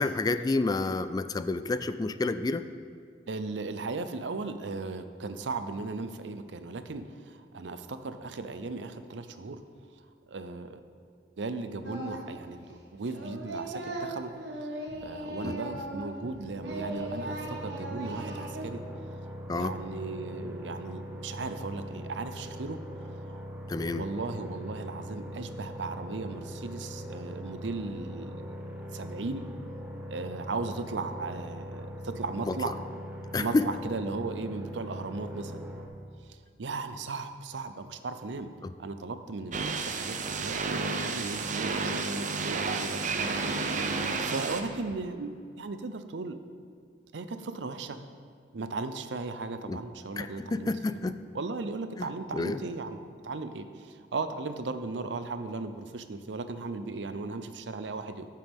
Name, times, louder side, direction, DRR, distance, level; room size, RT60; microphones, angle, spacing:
voice 1, 0.0-2.6 15.4-15.5 19.5-19.8 23.7-24.0 32.5-32.6 33.3-33.6 38.6-38.7 49.7-49.8 50.2-51.1 52.0-52.6, left 3 dB, 20° left, 12 dB, 0.3 m, -29 dB
voice 2, 3.3-9.6 10.3-10.8 11.4-14.3 14.6-18.8 19.5-23.4 23.9-29.5 30.1-32.8 33.4-35.8 36.3-38.5 38.8-46.4 47.1-48.0 48.5-51.0 51.3-58.3, right 3 dB, 85° right, 10 dB, 0.6 m, -37 dB
Singing, 11.8-12.4 12.7-16.3 16.6-18.7, right 1 dB, 70° right, 1.4 m, -38 dB
sound 1, 16.6-35.9, equal, 10° right, 1.1 m, -41 dB
sound 2, 39.5-44.6, right 4 dB, 45° right, 0.7 m, -31 dB
14.0 x 7.5 x 3.6 m, 2.2 s
head